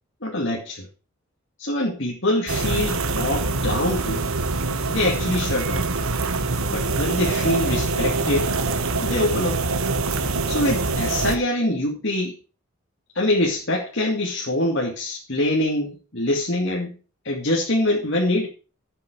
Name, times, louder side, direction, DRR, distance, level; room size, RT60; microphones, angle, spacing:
voice 1, 0.2-0.9 1.6-4.2 4.9-5.8 6.7-8.5 9.0-9.6 10.5-12.3 13.1-16.9 17.2-18.5, left 1 dB, 55° left, -2 dB, 2.4 m, -24 dB
sound 1, 2.5-11.4, right 3 dB, 85° right, 1.3 m, -24 dB
12.0 x 7.7 x 4.9 m, 0.35 s
head